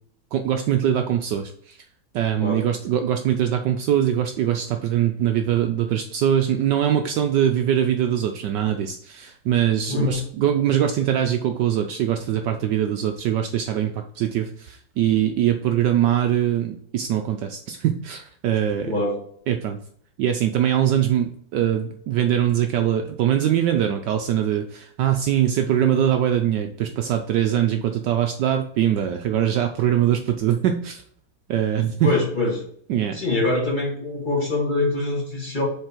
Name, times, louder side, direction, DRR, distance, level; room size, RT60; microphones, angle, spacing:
voice 1, 0.3-1.8 2.1-18.9 19.5-19.8 20.2-31.0 31.5-32.1 32.9-33.2, right 10 dB, 70° right, 5 dB, 1.1 m, -22 dB
voice 2, 9.9-10.2 18.8-19.1 32.0-32.6 33.1-35.6, left 2 dB, 25° left, -2 dB, 1.6 m, -24 dB
6.5 x 4.1 x 4.5 m, 0.63 s
omnidirectional pair, 2.2 m